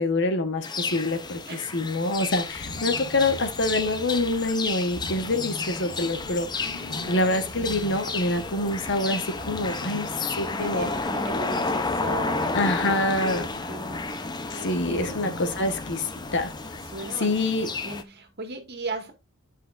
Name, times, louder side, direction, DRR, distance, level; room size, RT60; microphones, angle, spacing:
voice 1, 0.0-10.1 10.4-10.9 12.5-13.4 14.5-16.5 17.2-17.7, left 2 dB, 55° left, 1.3 m, -26 dB
sound 1, 0.6-18.0, left 3 dB, 20° left, 0.7 m, -32 dB
sound 2, 1.9-17.3, left 1 dB, 85° left, 1.6 m, -42 dB
voice 2, 10.5-15.2 15.5-15.7 16.9-17.3 17.6-19.1, right 2 dB, 50° right, 2.0 m, -37 dB
10.5 x 5.8 x 2.6 m
head